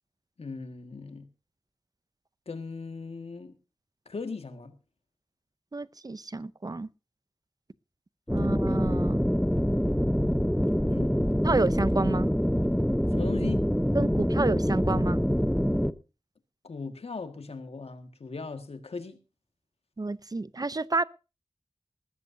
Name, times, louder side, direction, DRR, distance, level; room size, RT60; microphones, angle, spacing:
voice 1, 0.4-1.3 2.5-3.5 4.1-4.7 10.9-11.2 13.1-13.6 16.6-19.2, left 4 dB, 90° left, 1.8 m, -38 dB
voice 2, 5.7-6.9 8.3-9.2 11.4-12.3 13.9-15.2 20.0-21.0, right 3 dB, 40° right, 0.6 m, -29 dB
sound 1, 8.3-15.9, equal, 5° left, 0.8 m, -25 dB
19.5 x 14.5 x 2.7 m
wide cardioid pair, 70°, 10 cm